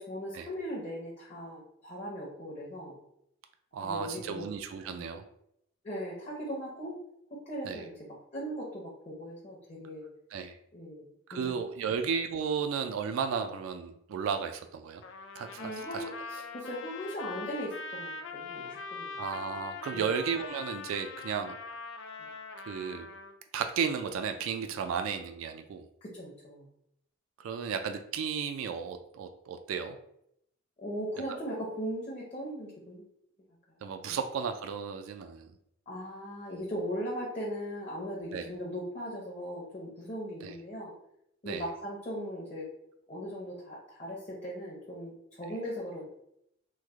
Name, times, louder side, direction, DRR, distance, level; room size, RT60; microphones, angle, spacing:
voice 1, 0.0-3.0 3.8-4.5 4.8-5.1 5.8-6.9 7.3-7.9 8.3-10.1 10.7-11.0 11.3-11.6 15.6-19.2 19.9-20.2 22.2-22.3 26.0-26.7 30.8-33.0 34.1-34.2 35.9-40.9 41.4-42.7 43.1-46.1, equal, 30° left, -6 dB, 0.6 m, -39 dB
voice 2, 3.7-5.2 7.6-7.8 10.3-10.5 11.3-15.0 15.4-16.0 19.2-21.6 22.7-23.1 23.5-25.9 27.4-30.0 33.8-35.5 38.3-38.5 40.4-40.5 41.5-41.6, right 6 dB, 85° right, 8 dB, 0.3 m, -34 dB
Trumpet, 15.0-23.3, left 4 dB, 70° left, 0.3 m, -42 dB
3.1 x 2.0 x 3.4 m, 0.76 s
head